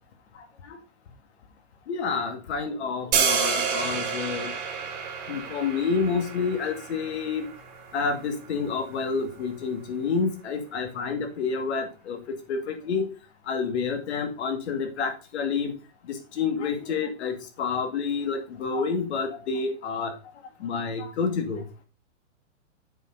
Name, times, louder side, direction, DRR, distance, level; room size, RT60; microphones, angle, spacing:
voice 1, 1.9-4.5 5.3-7.5 7.9-13.1 13.5-15.7 16.1-20.2 20.6-21.8, left 5 dB, 60° left, 5 dB, 2.3 m, -29 dB
sound 1, 3.1-9.2, right 6 dB, 25° right, 1.9 m, -30 dB
7.7 x 5.1 x 5.0 m, 0.34 s
hypercardioid pair, 155°, 37 cm